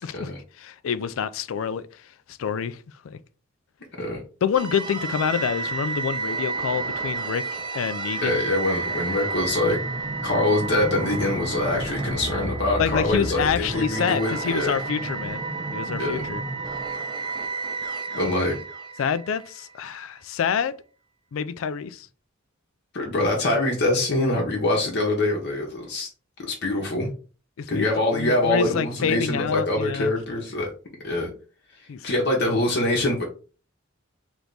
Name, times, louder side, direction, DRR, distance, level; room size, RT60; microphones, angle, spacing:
voice 1, 0.0-0.3 0.6-3.2 4.4-8.4 12.8-15.4 15.7-16.4 19.0-20.8 21.3-22.1 27.6-30.1 31.9-32.1, left 7 dB, 70° left, 0.4 m, -27 dB
sound 1, 4.5-19.7, right 3 dB, 20° right, 0.6 m, -31 dB
voice 2, 8.2-9.8 10.2-14.8 16.0-16.3 18.1-18.6 22.9-26.1 26.4-27.1 27.7-30.7 31.0-31.3 32.0-33.2, left 2 dB, 55° left, 1.0 m, -24 dB
3.4 x 3.0 x 3.9 m
head